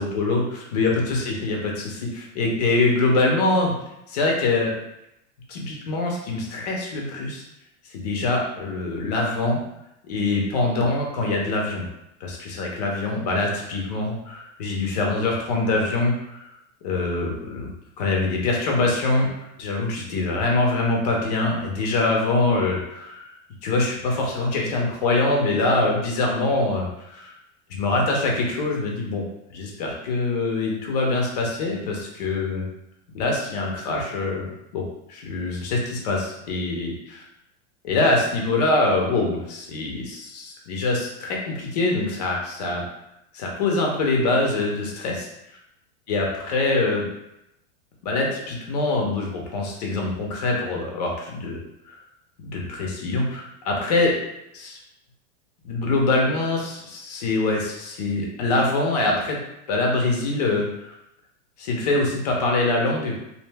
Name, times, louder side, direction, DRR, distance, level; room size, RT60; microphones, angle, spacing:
voice 1, 0.0-0.4 0.7-3.7 4.1-4.7 5.5-7.4 7.9-9.6 10.1-11.9 12.2-16.5 16.8-17.7 18.0-19.3 19.6-23.3 23.6-27.3 27.7-29.2 29.5-32.7 33.1-34.5 34.7-34.8 35.1-37.2 37.8-42.9 43.3-45.3 46.1-47.1 48.0-51.6 51.9-52.0 52.4-54.2 54.5-54.8 55.6-59.4 59.7-60.9 61.6-63.2, left 2 dB, 35° left, -1 dB, 0.5 m, -24 dB
2.6 x 2.0 x 3.2 m, 0.84 s
supercardioid pair, 175°, 37 cm